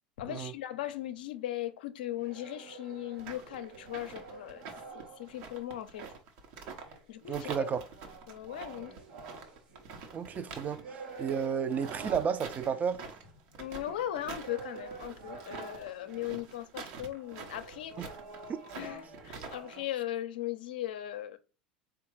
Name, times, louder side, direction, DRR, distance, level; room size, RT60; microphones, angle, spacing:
voice 1, 0.2-4.6 4.9-6.1 7.1-7.7 8.3-8.9 13.6-18.1 18.7-21.4, left 13 dB, 80° left, 0.5 m, -38 dB
sound 1, 2.1-5.6 6.6-16.5 17.2-19.8, right 4 dB, 80° right, 1.2 m, -48 dB
sound 2, 3.2-7.0 7.3-10.8 11.1-19.8, right 5 dB, 60° right, 0.9 m, -46 dB
voice 2, 7.3-7.8 10.1-13.0, right 7 dB, 35° right, 0.5 m, -32 dB
3.8 x 2.3 x 4.5 m
hypercardioid pair, 90°, 5 cm